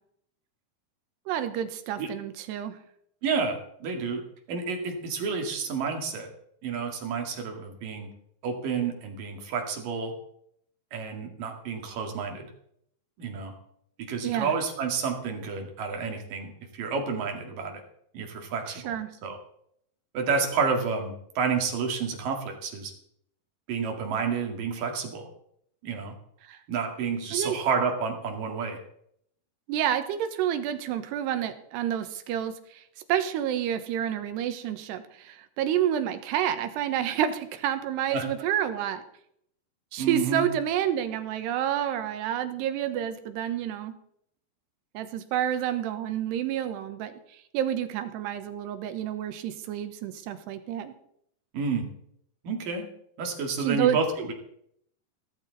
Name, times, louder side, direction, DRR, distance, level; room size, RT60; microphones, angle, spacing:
voice 1, 1.3-2.8 14.2-14.5 18.7-19.1 26.5-26.6 27.3-27.6 29.7-32.8 33.1-39.0 39.9-43.9 44.9-47.2 47.5-50.9 53.6-54.0, right 10 dB, 80° right, 10 dB, 3.2 m, -29 dB
voice 2, 3.2-4.2 4.5-6.3 6.6-8.1 8.4-10.1 10.9-12.5 13.2-13.5 14.1-17.8 18.1-18.9 19.2-19.4 20.1-22.9 23.7-25.3 25.8-26.1 26.7-28.8 38.1-38.3 40.0-40.5 51.5-51.9 52.4-52.9 53.2-54.3, right 5 dB, 55° right, 3 dB, 3.6 m, -30 dB
16.5 x 13.5 x 4.0 m, 0.70 s
omnidirectional pair, 4.9 m